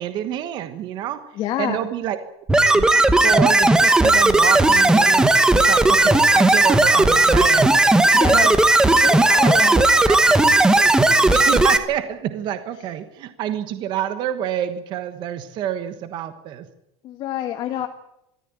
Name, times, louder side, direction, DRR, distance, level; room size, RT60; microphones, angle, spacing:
voice 1, 0.0-1.2 1.6-2.2 2.6-2.9 3.2-5.2 5.5-7.7 8.3-8.6 9.6-16.7 17.8-17.9, right 10 dB, 35° right, 10 dB, 1.3 m, -28 dB
voice 2, 1.4-1.8 8.0-8.5 9.0-10.1 17.0-17.9, left 12 dB, 35° left, 6 dB, 1.4 m, -28 dB
sound 1, 2.5-11.8, right 2 dB, 5° right, 1.0 m, -15 dB
23.0 x 14.5 x 9.0 m, 0.86 s
supercardioid pair, 170°, 14 cm